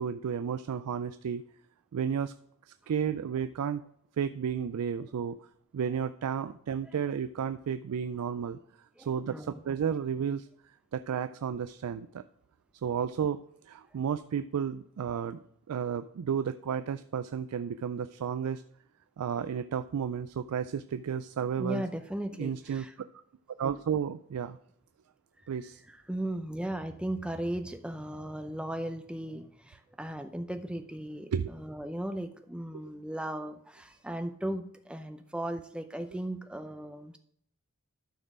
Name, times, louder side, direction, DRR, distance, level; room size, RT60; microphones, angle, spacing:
voice 1, 0.0-1.4 1.9-2.3 2.9-3.8 4.2-5.4 5.7-8.6 9.0-10.5 10.9-12.2 12.8-13.4 13.7-15.4 15.7-18.6 19.2-21.8 22.4-22.9 23.6-24.6 25.5-25.8 31.3-31.5, right 7 dB, 85° right, 11 dB, 0.4 m, -32 dB
voice 2, 9.0-9.8 21.5-22.9 25.4-25.5 25.9-37.2, right 1 dB, 5° right, 7 dB, 0.5 m, -37 dB
12.0 x 4.4 x 4.8 m, 0.67 s
head